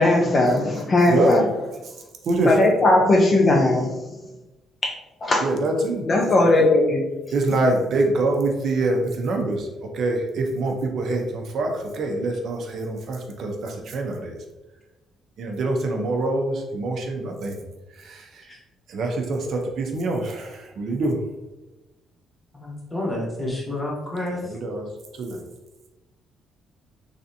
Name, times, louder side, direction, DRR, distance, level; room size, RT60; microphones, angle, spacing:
voice 1, 0.0-1.5 2.5-3.9 4.8-4.9 5.2-5.5 6.1-7.0, left 2 dB, 30° left, 0 dB, 0.4 m, -18 dB
voice 2, 5.4-6.0 7.3-9.7 9.9-14.4 15.4-17.6 18.0-18.4 18.9-21.2 24.6-24.8 25.2-25.4, right 2 dB, 50° right, 2 dB, 0.4 m, -25 dB
voice 3, 22.5-24.6, left 1 dB, 10° left, -3 dB, 0.8 m, -30 dB
3.2 x 2.6 x 2.6 m, 1.1 s
cardioid pair, 165°, 0 cm